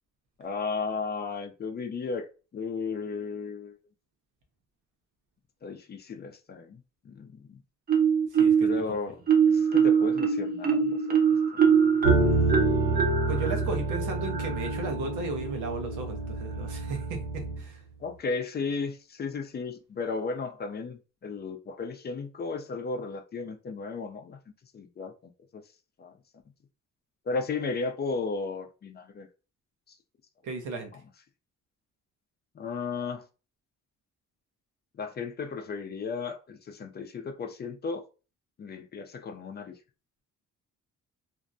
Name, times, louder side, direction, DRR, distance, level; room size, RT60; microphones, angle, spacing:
voice 1, 0.4-3.8 5.6-7.6 8.6-11.2 11.5-12.8 18.0-24.4 24.7-25.6 26.0-26.1 27.3-29.3 29.9-30.0 32.5-33.3 35.0-38.1 38.6-39.8, left 4 dB, 35° left, 0.4 m, -35 dB
Marimba xylophone, 7.9-8.8 9.3-14.8, right 6 dB, 30° right, 0.5 m, -23 dB
voice 2, 8.3-8.8 13.3-17.2 17.6-17.8 30.4-30.9, right 3 dB, 90° right, 0.7 m, -35 dB
sound 1, 12.0-17.6, right 3 dB, 70° right, 1.3 m, -28 dB
2.5 x 2.1 x 2.5 m
cardioid pair, 90°, 30 cm